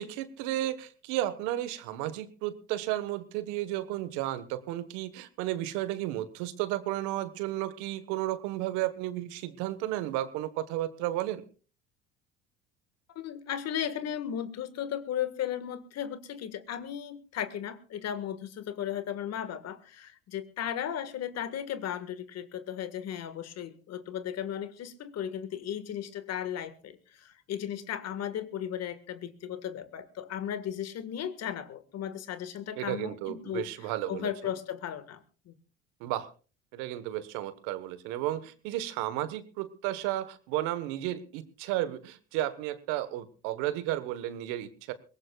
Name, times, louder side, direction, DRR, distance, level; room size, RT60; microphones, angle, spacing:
voice 1, 0.0-11.4 32.8-34.3 36.0-36.3 36.7-44.9, right 14 dB, 75° right, 14 dB, 1.4 m, -33 dB
voice 2, 13.2-35.5, left 9 dB, 55° left, 11 dB, 1.8 m, -36 dB
22.0 x 19.0 x 2.4 m, 0.36 s
hypercardioid pair, 75°, 31 cm